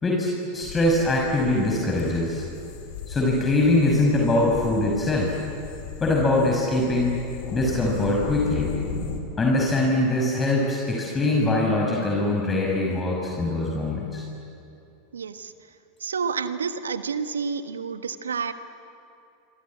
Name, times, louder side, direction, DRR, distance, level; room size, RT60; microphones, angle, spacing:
voice 1, 0.0-2.4 3.1-5.3 6.0-7.2 7.5-8.7 9.4-14.2, left 2 dB, 20° left, -2 dB, 5.7 m, -22 dB
sound 1, 0.6-9.2, left 6 dB, 60° left, 3.9 m, -36 dB
voice 2, 15.1-15.5 16.0-18.5, right 5 dB, 80° right, 10 dB, 1.4 m, -29 dB
27.5 x 25.5 x 8.5 m, 2.7 s
hypercardioid pair, 90°, 0 cm